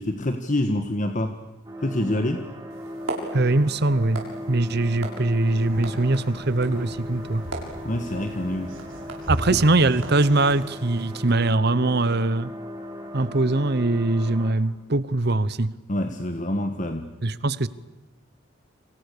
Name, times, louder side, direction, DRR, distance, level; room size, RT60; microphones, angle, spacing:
voice 1, 0.0-1.4 1.8-2.4 7.8-8.8 9.5-9.6 15.9-17.1, left 1 dB, 40° left, 1.5 m, -26 dB
sound 1, 1.6-14.5, left 1 dB, 20° right, 7.2 m, -38 dB
sound 2, 2.7-11.3, right 1 dB, 85° right, 6.9 m, -37 dB
voice 2, 3.3-7.4 9.3-12.5 13.1-15.7 17.2-17.7, right 2 dB, 55° right, 1.0 m, -22 dB
sound 3, 5.4-10.6, right 1 dB, 70° right, 5.2 m, -44 dB
30.0 x 27.0 x 6.9 m
head